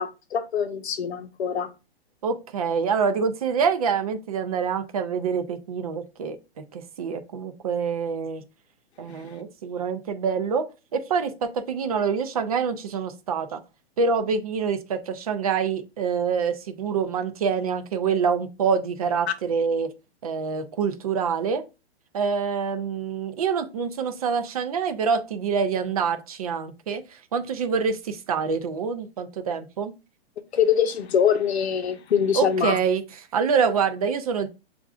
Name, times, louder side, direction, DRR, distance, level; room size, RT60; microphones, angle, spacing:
voice 1, 0.0-1.7 9.1-9.2 30.5-32.8, left 8 dB, 85° left, 0.8 m, -24 dB
voice 2, 2.2-6.4 6.7-8.4 9.0-13.6 14.0-19.9 20.2-21.6 22.1-29.9 32.3-34.5, right 6 dB, 35° right, 0.4 m, -26 dB
6.7 x 2.5 x 2.3 m
hypercardioid pair, 165°, 32 cm